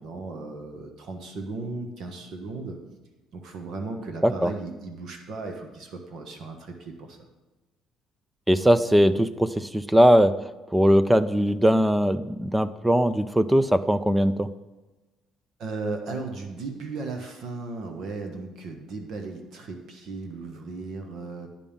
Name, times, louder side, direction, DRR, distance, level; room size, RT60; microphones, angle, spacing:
voice 1, 0.0-2.8 3.3-7.2 15.6-21.5, right 3 dB, 50° right, 4 dB, 1.2 m, -36 dB
voice 2, 8.5-10.3 10.7-14.5, equal, 5° right, 14 dB, 0.3 m, -20 dB
10.0 x 5.4 x 7.0 m, 1.2 s
cardioid pair, 155°, 0 cm